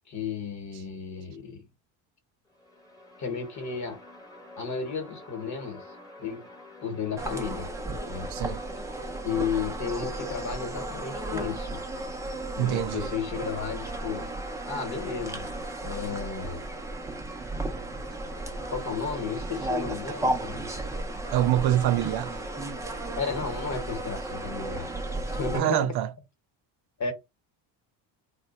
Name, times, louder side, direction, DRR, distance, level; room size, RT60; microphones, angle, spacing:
voice 1, 0.1-1.7 3.2-4.0 4.6-5.9 6.2-6.5 6.8-7.7 8.1-8.3 9.2-11.8 12.5-14.3 14.6-15.5 15.8-16.7 18.7-20.7 23.2-24.9 25.4-25.9 27.0-27.1, left 6 dB, 40° left, 1.1 m, -33 dB
sound 1, 2.5-9.5, left 2 dB, 10° left, 0.8 m, -50 dB
sound 2, 7.2-25.6, right 2 dB, 5° right, 0.4 m, -34 dB
voice 2, 8.3-8.6 12.6-13.1 18.1-18.2 21.3-22.4 25.5-26.1, right 12 dB, 60° right, 0.5 m, -25 dB
3.2 x 2.2 x 4.0 m
cardioid pair, 135°, 44 cm